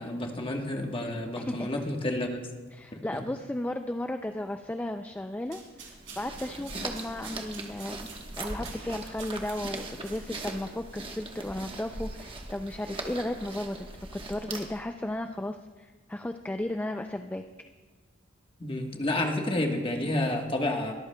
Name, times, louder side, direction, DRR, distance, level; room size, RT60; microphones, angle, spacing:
voice 1, 0.0-2.4 2.9-3.0 18.6-20.9, left 1 dB, 25° left, 2 dB, 1.2 m, -30 dB
voice 2, 2.7-8.1 8.4-13.9 14.1-17.4, left 1 dB, 10° left, 6 dB, 0.3 m, -34 dB
sound 1, 5.4-10.8, right 6 dB, 70° right, 3.7 m, -49 dB
sound 2, 5.9-14.9, right 2 dB, 25° right, 1.1 m, -40 dB
22.0 x 13.5 x 2.2 m, 1.4 s
head